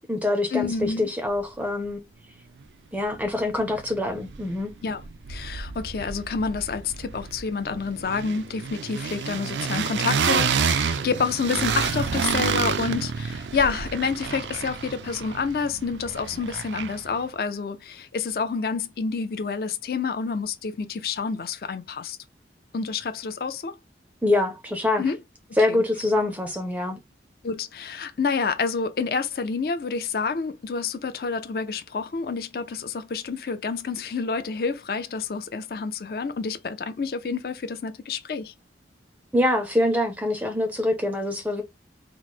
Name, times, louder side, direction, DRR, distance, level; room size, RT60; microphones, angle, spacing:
voice 1, 0.0-2.0 2.9-4.7 24.2-25.1 25.6-27.0 39.3-41.6, left 1 dB, 10° right, 0.4 m, -25 dB
voice 2, 0.5-1.1 4.8-5.0 5.3-22.2 22.7-23.7 25.0-25.2 25.7-25.8 27.4-38.5, left 5 dB, 55° left, 0.4 m, -28 dB
sound 1, 3.2-3.3 3.6-4.7 5.0-17.2, right 6 dB, 80° right, 0.4 m, -29 dB
3.0 x 2.0 x 4.0 m
head